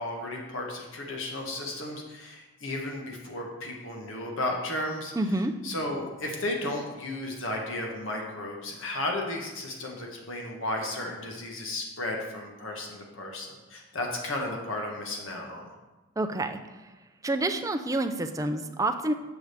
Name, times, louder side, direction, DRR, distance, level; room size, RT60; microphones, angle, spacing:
voice 1, 0.0-15.7, left 1 dB, 65° left, 0 dB, 1.2 m, -34 dB
voice 2, 5.2-5.5 16.2-16.6 17.2-19.1, right 2 dB, 15° right, 6 dB, 0.4 m, -28 dB
7.1 x 4.9 x 6.6 m, 1.1 s
head